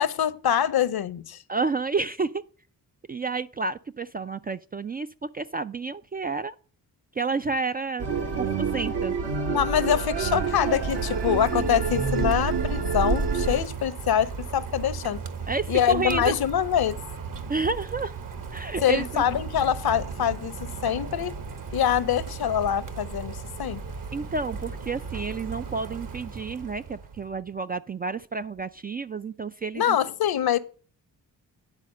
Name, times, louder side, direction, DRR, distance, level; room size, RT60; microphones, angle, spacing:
voice 1, 0.0-1.4 9.5-15.2 15.7-17.0 18.8-21.3 21.7-23.8 29.8-30.6, left 9 dB, 60° left, 0.8 m, -25 dB
voice 2, 1.5-2.4 3.1-6.5 7.2-8.1 8.4-9.1 15.5-16.3 17.5-18.2 18.5-19.2 24.1-30.0, right 4 dB, 25° right, 0.3 m, -30 dB
sound 1, 8.0-13.6, right 5 dB, 65° right, 1.4 m, -27 dB
Rain, 10.1-27.3, right 5 dB, 50° right, 1.2 m, -36 dB
9.9 x 4.1 x 6.5 m
supercardioid pair, 45°, 43 cm